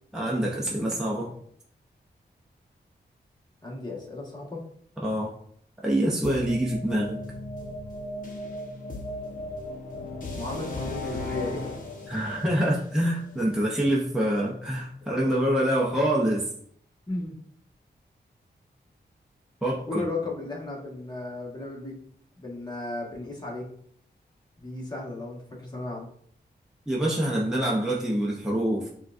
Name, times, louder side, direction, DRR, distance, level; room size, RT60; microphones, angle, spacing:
voice 1, 0.1-1.3 5.0-5.3 5.8-7.2 12.1-16.5 19.6-20.0 26.9-28.9, right 1 dB, 5° right, -4 dB, 0.7 m, -26 dB
voice 2, 3.6-4.6 10.3-11.8 17.1-17.3 19.9-22.0 22.4-23.7 24.6-26.1, left 2 dB, 25° left, -3 dB, 1.4 m, -35 dB
sound 1, 6.2-14.1, left 2 dB, 50° left, 0.9 m, -37 dB
5.6 x 2.4 x 2.5 m, 0.63 s
cardioid pair, 65°, 18 cm